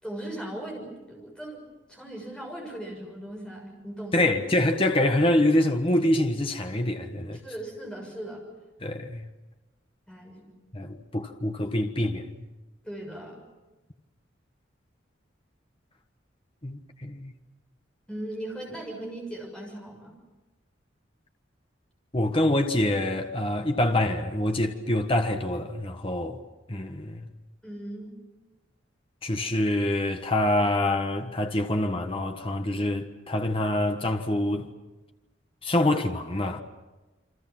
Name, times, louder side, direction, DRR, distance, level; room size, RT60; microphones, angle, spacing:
voice 1, 0.0-1.6 1.9-4.3 7.4-8.4 10.1-10.4 12.8-13.4 18.1-20.1 27.6-28.1, right 1 dB, 5° left, 6.7 m, -38 dB
voice 2, 4.1-7.4 8.8-9.3 10.7-12.4 16.6-17.3 22.1-26.4 26.7-27.3 29.2-34.7 35.6-36.6, left 1 dB, 30° left, 1.4 m, -25 dB
29.0 x 25.0 x 6.0 m
head